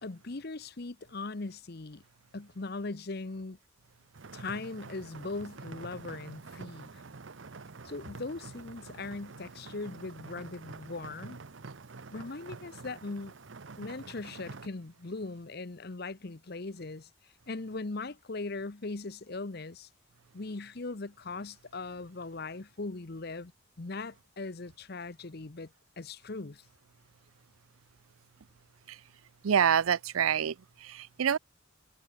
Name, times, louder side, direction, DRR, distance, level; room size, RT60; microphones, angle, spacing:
voice 1, 0.0-2.0 2.3-3.6 4.3-7.0 7.8-11.4 12.1-13.3 13.8-17.1 17.5-19.9 20.3-23.5 23.8-25.7 26.0-26.6, left 3 dB, 50° left, 0.9 m, -39 dB
sound 1, 4.1-14.7, right 4 dB, 65° right, 0.8 m, -47 dB
voice 2, 29.4-31.4, right 8 dB, 90° right, 0.5 m, -27 dB
head